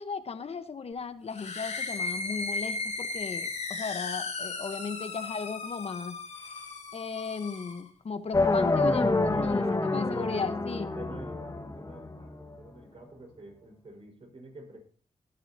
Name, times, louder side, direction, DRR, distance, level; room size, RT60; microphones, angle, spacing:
voice 1, 0.0-6.2 6.9-10.9, left 5 dB, 60° left, 9 dB, 1.2 m, -36 dB
sound 1, 1.3-7.9, left 3 dB, 85° left, 4.3 m, -36 dB
sound 2, 8.3-12.4, left 3 dB, 30° left, 1.8 m, -27 dB
voice 2, 9.0-14.8, right 2 dB, 55° right, 3 dB, 5.1 m, -47 dB
17.0 x 11.0 x 2.9 m, 0.40 s
wide cardioid pair, 85°, 12 cm